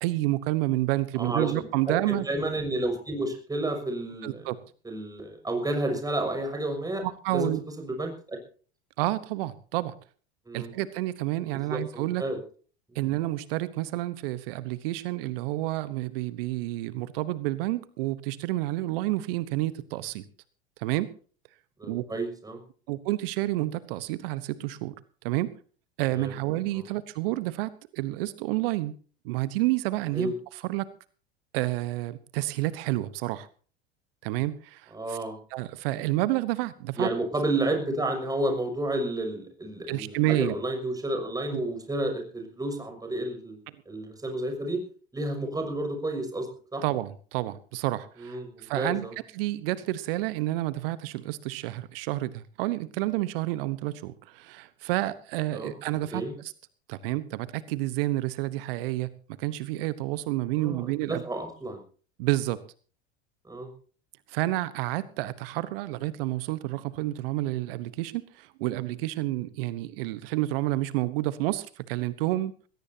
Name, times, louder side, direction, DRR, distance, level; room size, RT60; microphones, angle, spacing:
voice 1, 0.0-2.3 4.2-4.6 7.0-7.6 9.0-9.9 10.5-12.2 12.9-20.2 20.8-21.1 21.9-22.0 22.9-24.9 25.2-25.5 26.0-28.9 29.2-30.3 30.6-30.9 31.5-33.5 34.2-35.2 35.5-37.1 39.9-40.5 41.5-41.6 46.8-49.1 49.3-56.5 56.9-59.1 59.4-61.2 62.2-62.6 64.3-72.6, right 17 dB, 65° right, 16 dB, 1.1 m, -29 dB
voice 2, 1.2-4.5 4.8-7.0 7.3-7.5 7.8-8.4 10.5-10.7 11.5-12.4 12.9-13.0 21.8-22.6 26.1-26.3 26.7-26.9 30.1-30.3 34.9-35.4 37.0-43.6 43.9-44.8 45.1-46.8 48.2-49.1 55.5-55.7 56.1-56.3 60.6-61.8 63.5-63.7, right 1 dB, 10° right, 5 dB, 6.1 m, -31 dB
20.0 x 17.5 x 2.8 m, 0.41 s
hypercardioid pair, 85°, 31 cm